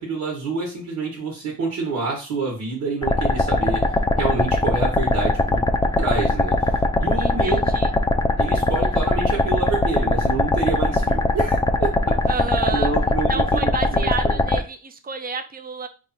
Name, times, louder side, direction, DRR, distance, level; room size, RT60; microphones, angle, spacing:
voice 1, 0.0-7.6 8.4-12.1 12.7-14.4, right 4 dB, 75° right, -1 dB, 1.4 m, -28 dB
sound 1, 3.0-14.6, left 2 dB, 15° left, 0.4 m, -20 dB
voice 2, 7.2-7.9 12.3-12.9 13.3-15.9, right 5 dB, 30° right, 8 dB, 0.6 m, -30 dB
3.4 x 2.4 x 4.2 m, 0.34 s
cardioid pair, 90°, 30 cm